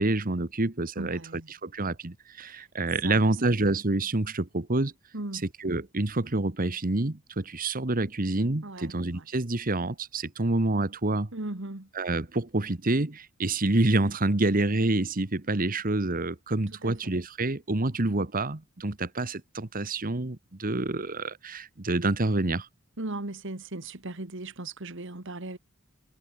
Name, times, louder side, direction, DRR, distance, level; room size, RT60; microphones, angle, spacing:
voice 1, 0.0-4.9 5.3-11.3 11.9-22.7, right 2 dB, 45° right, 1.4 m, -27 dB
voice 2, 1.0-1.5 3.0-3.2 5.1-5.4 8.6-9.2 11.3-11.9 16.8-16.9 23.0-25.6, right 2 dB, 65° right, 2.1 m, -37 dB
head